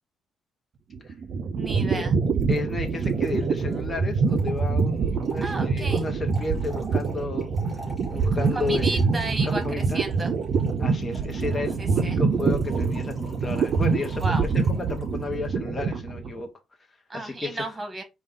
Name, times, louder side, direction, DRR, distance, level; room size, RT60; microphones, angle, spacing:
sound 1, 0.9-16.4, right 5 dB, 60° right, 0.5 m, -25 dB
voice 1, 1.5-2.2 5.4-6.0 8.5-10.3 11.8-12.2 14.2-14.4 17.1-18.0, right 2 dB, 20° right, 1.5 m, -33 dB
Trickle dribble / Fill (with liquid), 1.7-1.8 2.0-2.1 2.3-15.4, right 1 dB, 10° left, 2.7 m, -47 dB
voice 2, 2.5-7.5 8.1-9.0 9.4-10.1 10.8-16.5 17.1-17.7, left 3 dB, 30° left, 0.9 m, -33 dB
5.0 x 2.3 x 3.6 m
cardioid pair, 90°, 0 cm